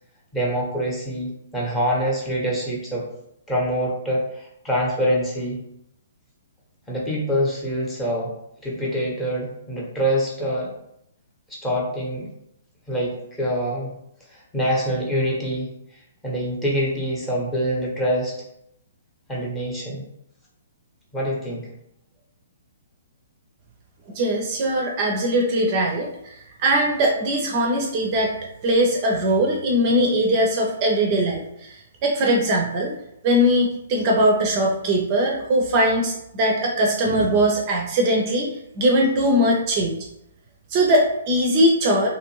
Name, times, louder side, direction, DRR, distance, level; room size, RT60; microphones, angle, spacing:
voice 1, 0.3-3.1 3.5-5.6 6.9-8.3 8.6-10.7 11.5-12.3 12.9-13.9 14.3-15.7 16.2-18.3 19.3-20.0 21.1-21.7, equal, 10° left, -4 dB, 0.8 m, -25 dB
voice 2, 24.1-26.3 26.6-28.3 28.6-32.9 33.2-40.0 40.7-42.1, equal, 35° right, 1 dB, 0.4 m, -20 dB
2.6 x 2.5 x 3.1 m, 0.79 s
figure-of-eight pair, 120°, 0 cm